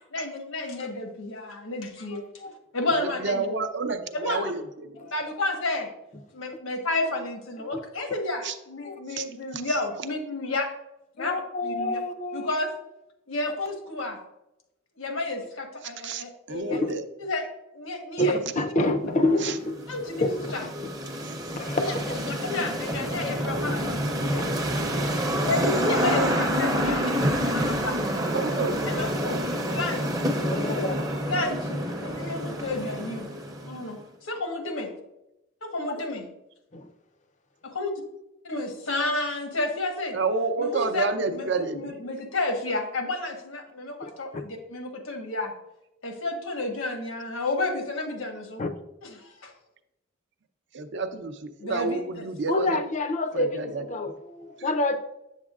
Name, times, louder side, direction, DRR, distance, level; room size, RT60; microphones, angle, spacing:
voice 1, 0.1-2.2 2.7-3.5 4.1-4.5 5.1-5.9 6.3-10.7 11.2-12.0 12.3-12.7 13.3-14.2 15.0-16.9 17.2-17.5 17.7-18.4 19.9-20.6 21.8-21.9 22.3-24.6 25.4-27.2 27.5-28.0 28.9-29.4 29.7-30.7 31.3-33.3 33.7-34.9 35.6-36.2 37.6-37.9 38.4-40.2 40.6-45.5 46.0-48.6 49.0-49.5 51.6-52.0, left 2 dB, 80° left, 4 dB, 1.2 m, -31 dB
voice 2, 3.0-4.6 4.9-5.1 8.4-8.5 9.1-9.2 9.5-9.8 16.0-17.0 19.4-19.5 21.2-21.3 25.3-25.6 28.3-29.0 40.1-42.0 50.7-52.8 53.3-53.8, right 4 dB, 60° right, 8 dB, 0.6 m, -30 dB
voice 3, 11.2-12.5 16.7-16.9 18.2-19.8 20.2-20.7 21.5-22.1 30.4-31.0 36.7-36.9 44.0-44.1 48.6-48.7 52.5-55.0, left 2 dB, 35° left, 7 dB, 0.5 m, -27 dB
sound 1, 19.4-33.9, equal, 20° right, 0.6 m, -28 dB
8.0 x 7.2 x 2.4 m, 0.89 s
head